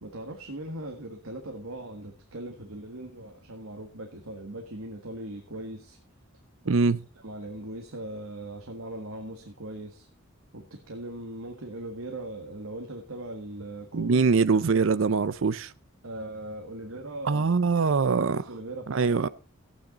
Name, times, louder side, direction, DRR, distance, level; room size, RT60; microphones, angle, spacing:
voice 1, 0.0-6.0 6.6-6.8 7.2-10.1 10.5-14.2 16.0-17.6 18.2-19.3, right 1 dB, 90° right, 1.8 m, -39 dB
voice 2, 6.7-7.0 13.9-15.7 17.2-18.4 18.9-19.3, right 4 dB, 65° right, 0.5 m, -23 dB
15.0 x 9.1 x 4.0 m
head